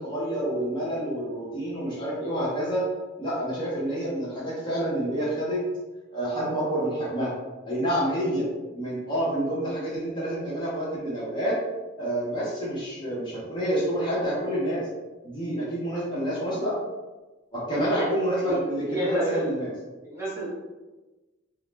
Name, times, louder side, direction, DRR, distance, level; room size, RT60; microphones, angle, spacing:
voice 1, 0.0-2.9 3.2-5.7 6.1-7.3 7.7-8.5 8.7-11.6 12.0-14.9 15.2-16.8 17.5-19.7, right 1 dB, 25° left, -7 dB, 0.6 m, -28 dB
voice 2, 17.9-18.6 18.9-19.5 20.0-20.5, equal, 10° right, -8 dB, 0.7 m, -31 dB
2.3 x 2.0 x 3.1 m, 1.2 s
head